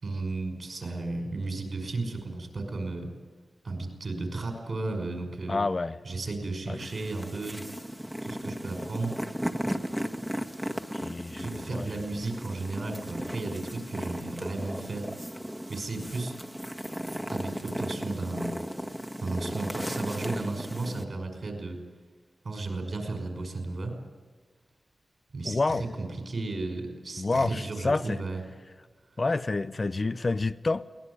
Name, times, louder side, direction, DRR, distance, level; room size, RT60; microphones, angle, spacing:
voice 1, 0.0-3.1 3.6-5.6 6.0-7.7 8.2-9.2 11.3-15.1 15.7-16.3 17.3-18.5 19.2-21.8 22.4-23.9 25.3-28.4, right 3 dB, 70° right, 4 dB, 5.6 m, -34 dB
voice 2, 5.5-6.0 6.7-6.8 10.9-11.9 25.4-25.9 27.2-28.2 29.2-30.8, left 3 dB, 50° left, 13 dB, 0.7 m, -28 dB
sound 1, 6.8-21.0, equal, 5° right, 1.6 m, -36 dB
22.5 x 18.5 x 9.8 m, 1.4 s
cardioid pair, 55°, 0 cm